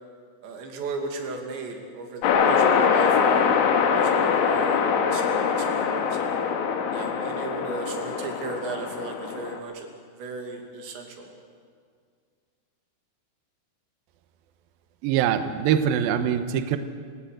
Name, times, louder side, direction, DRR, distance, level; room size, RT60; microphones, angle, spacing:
voice 1, 0.4-3.6 3.9-6.4 6.9-9.9 10.2-11.3, right 3 dB, 65° right, 3 dB, 4.5 m, -36 dB
sound 1, 2.2-9.6, left 6 dB, 80° left, 4.1 m, -23 dB
voice 2, 15.0-16.8, right 9 dB, 85° right, 9 dB, 2.1 m, -23 dB
29.0 x 18.0 x 6.6 m, 2.1 s
omnidirectional pair, 5.7 m